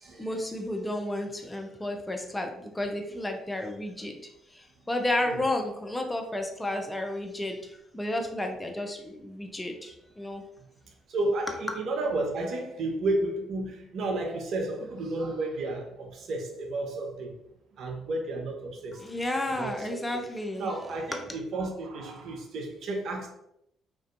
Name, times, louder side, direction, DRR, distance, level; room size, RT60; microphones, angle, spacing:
voice 1, 0.2-4.2 4.9-7.6 7.9-10.4 19.0-20.7, left 1 dB, 15° left, 0.5 m, -32 dB
voice 2, 11.1-17.3 17.8-19.0 19.6-20.0 20.6-23.3, right 2 dB, 65° right, 0.5 m, -32 dB
2.5 x 2.1 x 2.5 m
hypercardioid pair, 50°, 0 cm